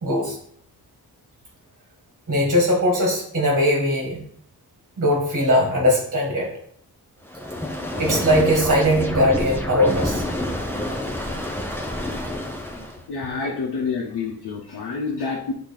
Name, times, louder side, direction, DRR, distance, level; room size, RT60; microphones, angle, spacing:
voice 1, 0.0-0.4 2.3-4.2 5.0-6.5 8.0-10.2, equal, 35° right, -2 dB, 1.8 m, -20 dB
sound 1, 7.3-13.0, left 1 dB, 5° left, 0.8 m, -28 dB
voice 2, 13.1-15.5, left 4 dB, 85° left, -2 dB, 1.1 m, -28 dB
8.9 x 3.1 x 4.1 m, 0.64 s
wide cardioid pair, 135°, 38 cm